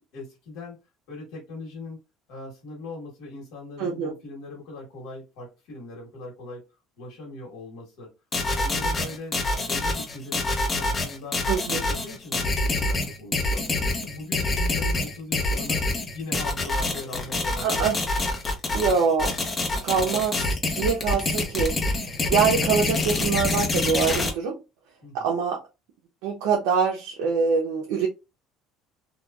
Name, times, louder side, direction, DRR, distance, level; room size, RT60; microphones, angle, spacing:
voice 1, 0.1-0.8 1.1-2.0 2.3-6.6 7.0-8.1 8.5-11.4 11.7-15.8 16.1-17.8 25.0-25.2, left 3 dB, 70° left, 1.2 m, -40 dB
voice 2, 3.8-4.1 11.5-11.8 17.6-18.0 18.7-19.4 19.8-24.6 25.1-25.6 26.2-28.1, right 6 dB, 85° right, 0.6 m, -24 dB
sound 1, 8.3-24.3, left 2 dB, 20° left, 0.7 m, -26 dB
3.0 x 2.3 x 2.3 m
cardioid pair, 145°, 0 cm